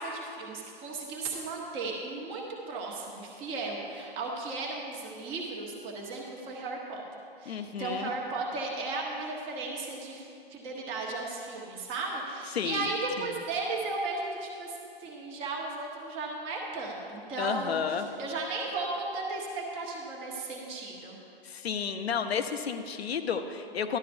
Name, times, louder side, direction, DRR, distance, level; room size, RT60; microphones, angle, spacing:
voice 1, 0.0-7.0 7.4-21.1, right 3 dB, 20° right, -1 dB, 1.0 m, -35 dB
voice 2, 7.5-8.1 12.5-12.9 13.2-13.4 17.4-18.1 21.4-24.0, left 7 dB, 80° left, 8 dB, 0.8 m, -32 dB
13.0 x 11.5 x 2.6 m, 2.6 s
hypercardioid pair, 155°, 31 cm